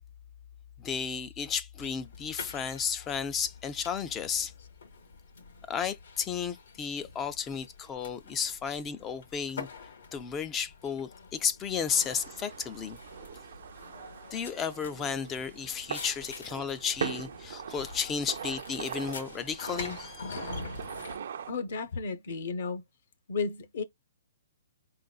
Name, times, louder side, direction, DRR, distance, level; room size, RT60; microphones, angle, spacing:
voice 1, 0.8-4.5 5.7-9.7 10.1-13.0 14.3-20.5, left 7 dB, 15° left, 0.4 m, -33 dB
sound 1, 1.8-21.2, left 4 dB, 80° left, 2.0 m, -46 dB
sound 2, 11.9-21.5, right 7 dB, 60° right, 0.5 m, -41 dB
voice 2, 21.5-22.8 23.3-23.8, left 4 dB, 55° left, 0.8 m, -33 dB
4.6 x 3.9 x 2.3 m
hypercardioid pair, 170°, 0 cm